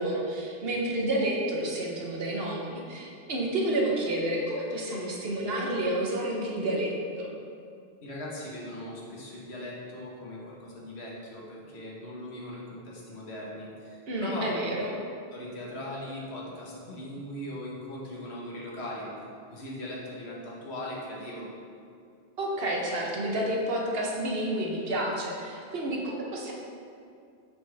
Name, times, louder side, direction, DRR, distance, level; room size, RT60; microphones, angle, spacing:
voice 1, 0.0-7.3 14.1-14.9 22.4-26.5, right 1 dB, 70° right, -1 dB, 1.2 m, -30 dB
voice 2, 8.0-14.5 15.3-19.1 19.5-21.5, left 1 dB, 85° left, -4 dB, 1.5 m, -39 dB
6.5 x 5.7 x 3.4 m, 2.4 s
omnidirectional pair, 1.1 m